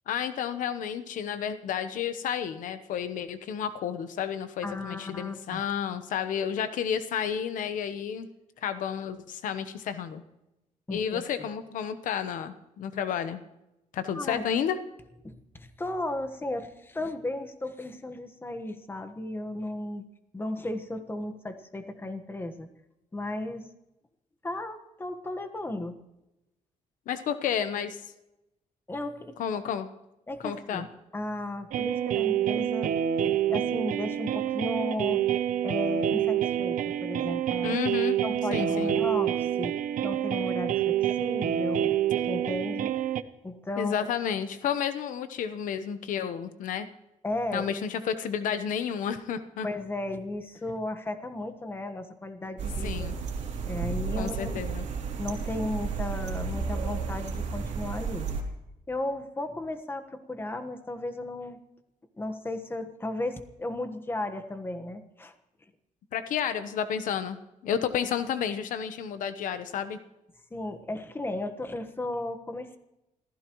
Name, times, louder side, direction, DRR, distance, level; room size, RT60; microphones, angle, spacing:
voice 1, 0.1-8.3 8.6-10.2 10.9-13.4 13.9-14.8 27.1-28.0 29.4-29.9 30.4-30.9 37.6-38.2 38.5-38.9 43.8-46.9 47.5-49.7 52.8-53.2 54.2-54.9 66.1-67.4 67.6-70.0, left 8 dB, 85° left, 10 dB, 1.0 m, -31 dB
voice 2, 4.6-5.6 10.9-11.2 14.1-14.5 15.2-20.0 20.3-22.7 23.1-23.7 24.4-25.9 28.9-29.4 30.3-30.9 31.1-32.9 33.5-35.2 35.6-37.8 38.2-39.8 40.0-41.9 42.3-42.9 43.4-44.1 47.2-47.8 49.6-53.1 53.7-54.6 55.2-58.3 58.9-61.6 62.2-65.3 70.5-72.8, left 1 dB, 15° left, 8 dB, 1.4 m, -35 dB
sound 1, 31.7-43.2, right 10 dB, 85° right, 0.8 m, -27 dB
sound 2, 52.6-58.4, right 5 dB, 60° right, 3.1 m, -32 dB
27.0 x 15.5 x 3.1 m, 0.92 s
cardioid pair, 125°, 13 cm